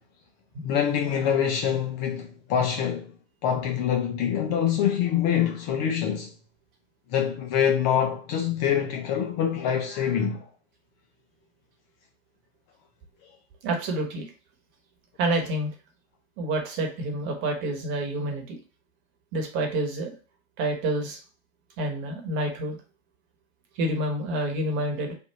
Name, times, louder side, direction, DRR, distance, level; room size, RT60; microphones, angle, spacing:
voice 1, 0.6-3.1 3.4-6.3 7.1-10.5, left 8 dB, 30° left, 0.4 m, -25 dB
voice 2, 13.6-14.3 15.2-15.7 16.4-18.6 19.3-20.1 20.6-21.2 21.8-22.8 23.7-25.1, right 1 dB, 35° right, 1.2 m, -28 dB
3.4 x 2.4 x 4.1 m
hypercardioid pair, 125°, 32 cm